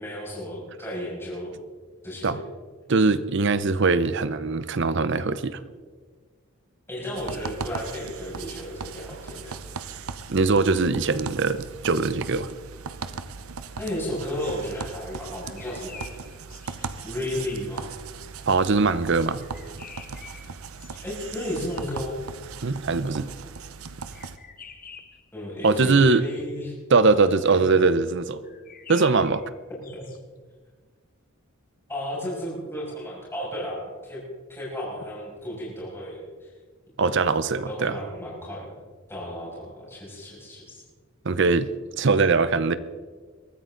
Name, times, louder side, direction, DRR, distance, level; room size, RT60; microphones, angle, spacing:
voice 1, 0.0-1.6 2.0-2.4 6.9-9.6 13.8-16.0 17.0-17.9 21.0-22.2 25.3-26.7 27.5-27.6 29.9-30.0 31.9-34.2 34.5-36.5 37.7-38.6 39.1-40.8, left 1 dB, 10° left, 6.2 m, -33 dB
voice 2, 2.9-5.6 10.3-12.5 18.5-19.4 22.6-23.3 25.6-26.2 26.9-28.4 28.9-29.4 37.0-38.0 41.2-41.7 42.0-42.7, right 4 dB, 55° right, 0.7 m, -21 dB
sound 1, 7.2-24.4, right 5 dB, 85° right, 0.9 m, -38 dB
sound 2, 15.4-17.1 19.4-22.0 24.1-25.3 28.4-30.2, left 6 dB, 40° left, 1.3 m, -47 dB
22.0 x 14.0 x 3.9 m
head